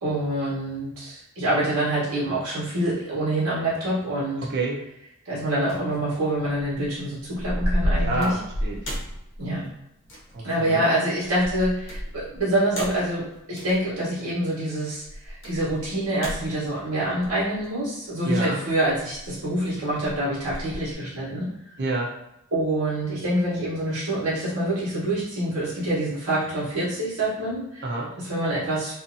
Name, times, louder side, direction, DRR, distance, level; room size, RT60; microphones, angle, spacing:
voice 1, 0.0-4.4 5.2-8.3 9.4-9.7 10.4-13.2 13.5-21.5 22.5-27.8 28.3-28.9, right 1 dB, 85° right, -9 dB, 1.2 m, -26 dB
voice 2, 4.4-4.8 8.1-8.8 10.3-10.8 18.2-18.6 21.8-22.1 27.8-28.1, right 2 dB, 50° right, 0 dB, 0.6 m, -28 dB
sound 1, 5.7-6.0 6.5-6.8 7.2-9.7 10.0-10.4 11.3-13.9 15.0-17.7 18.8-19.7 20.0-20.9, equal, 60° left, 0.8 m, -31 dB
2.7 x 2.5 x 2.6 m, 0.84 s
head